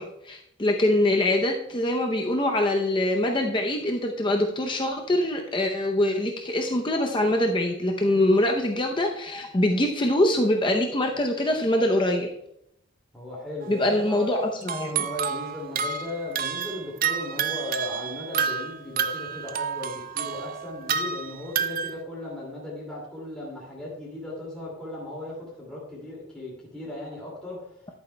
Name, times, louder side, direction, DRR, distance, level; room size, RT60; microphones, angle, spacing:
voice 1, 0.0-12.3 13.7-15.0, left 1 dB, 20° left, 2 dB, 0.6 m, -24 dB
voice 2, 13.1-14.4 14.9-27.7, left 1 dB, 5° left, -6 dB, 2.3 m, -37 dB
sound 1, 13.6-13.8 14.6-22.0, right 7 dB, 40° right, 0.4 m, -30 dB
11.0 x 8.8 x 2.2 m, 0.75 s
head